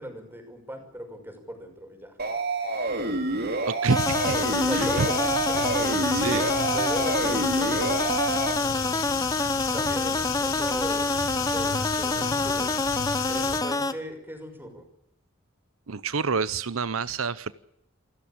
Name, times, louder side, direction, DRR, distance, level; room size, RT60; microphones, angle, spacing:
voice 1, 0.0-2.2 4.5-5.7 6.7-7.7 8.3-9.2 9.6-12.7 13.3-14.8, equal, 10° right, 5 dB, 5.9 m, -38 dB
sound 1, 2.2-8.5, right 2 dB, 50° right, 3.1 m, -28 dB
voice 2, 3.7-4.4 4.7-5.1 6.1-6.5 15.9-17.5, right 4 dB, 85° right, 16 dB, 0.8 m, -28 dB
sound 2, 3.9-13.9, left 2 dB, 20° left, 1.2 m, -27 dB
sound 3, 4.0-13.6, left 7 dB, 70° left, 2.3 m, -33 dB
28.0 x 13.5 x 8.8 m, 0.79 s
head